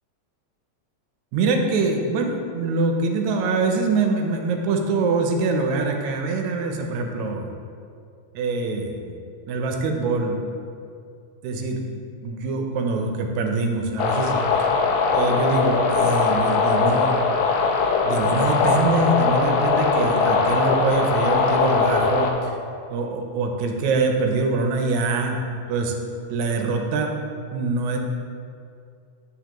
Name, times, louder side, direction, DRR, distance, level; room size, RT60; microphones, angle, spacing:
voice 1, 1.3-7.5 8.4-10.4 11.4-11.8 12.2-14.3 14.6-14.7 15.1-17.1 18.0-22.6 22.9-25.4 25.7-26.0 26.3-27.2 27.5-28.0, right 3 dB, 80° right, 3 dB, 1.9 m, -24 dB
sound 1, 14.0-22.3, left 4 dB, 80° left, 1.9 m, -20 dB
8.0 x 4.9 x 3.0 m, 2.4 s
omnidirectional pair, 3.4 m